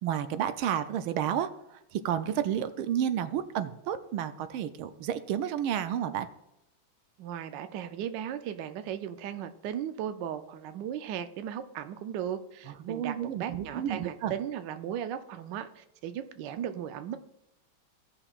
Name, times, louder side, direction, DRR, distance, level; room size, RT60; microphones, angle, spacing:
voice 1, 0.0-6.3 12.7-14.3, right 9 dB, 85° right, 11 dB, 1.4 m, -31 dB
voice 2, 7.2-17.2, right 9 dB, 70° right, 9 dB, 1.2 m, -36 dB
16.0 x 5.8 x 2.4 m, 0.88 s
omnidirectional pair, 2.2 m